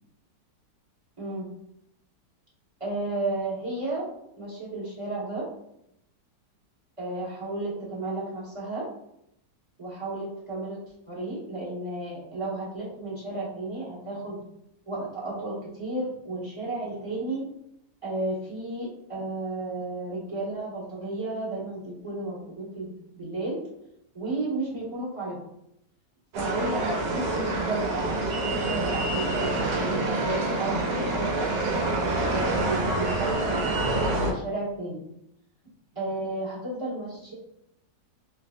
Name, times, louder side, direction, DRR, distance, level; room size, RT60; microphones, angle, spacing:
voice 1, 1.2-1.5 2.8-4.1 4.4-5.5 7.0-8.8 9.8-10.8 11.1-14.4 14.8-17.4 18.0-23.6 24.1-25.5 26.3-31.5 32.0-35.0 35.9-37.3, right 2 dB, 20° right, -8 dB, 1.3 m, -33 dB
sound 1, 26.3-34.3, right 2 dB, 75° right, 1.4 m, -27 dB
3.4 x 3.1 x 2.6 m, 0.76 s
omnidirectional pair, 1.9 m